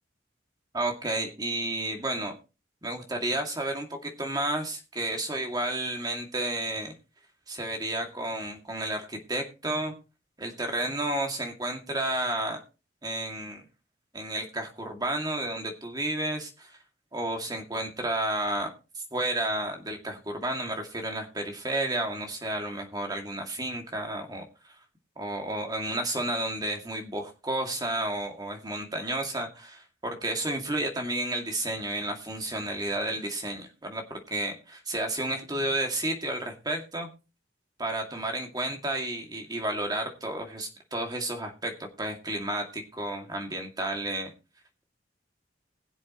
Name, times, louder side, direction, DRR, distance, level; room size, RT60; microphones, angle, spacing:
voice 1, 0.7-2.3 2.8-6.9 7.5-9.9 10.4-12.6 13.0-13.6 14.1-16.8 17.1-24.7 25.2-37.1 37.8-44.3, right 1 dB, 20° right, 3 dB, 2.2 m, -31 dB
21.0 x 7.5 x 3.0 m, 0.31 s
head